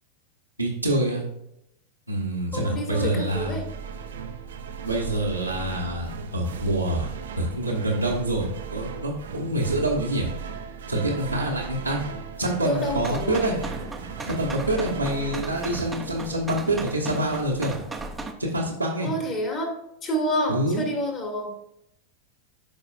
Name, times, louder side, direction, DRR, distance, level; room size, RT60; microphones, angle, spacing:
voice 1, 0.6-1.2 2.1-3.6 4.8-7.1 7.4-10.3 10.9-12.0 12.4-13.6 14.3-17.7 18.4-19.1 20.5-20.8, right 1 dB, 90° right, -5 dB, 1.2 m, -26 dB
voice 2, 2.5-3.7 12.6-13.6 19.0-19.8 20.0-21.5, equal, 30° left, 3 dB, 1.9 m, -28 dB
sound 1, 3.3-16.9, right 6 dB, 65° right, 0.6 m, -37 dB
sound 2, 13.0-18.3, right 3 dB, 10° right, 0.7 m, -37 dB
12.0 x 4.8 x 2.4 m, 0.81 s
figure-of-eight pair, 90°, 0 cm